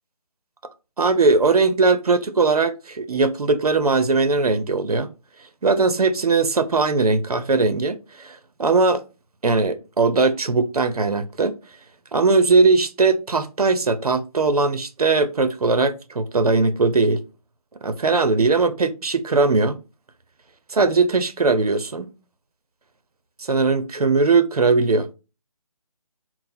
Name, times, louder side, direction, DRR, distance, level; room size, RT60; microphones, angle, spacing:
voice 1, 1.0-5.1 5.6-9.0 9.4-11.5 12.1-17.2 17.8-19.8 20.7-22.1 23.4-25.1, right 3 dB, 90° right, 0.6 m, -19 dB
4.0 x 2.0 x 4.2 m
figure-of-eight pair, 155°, 19 cm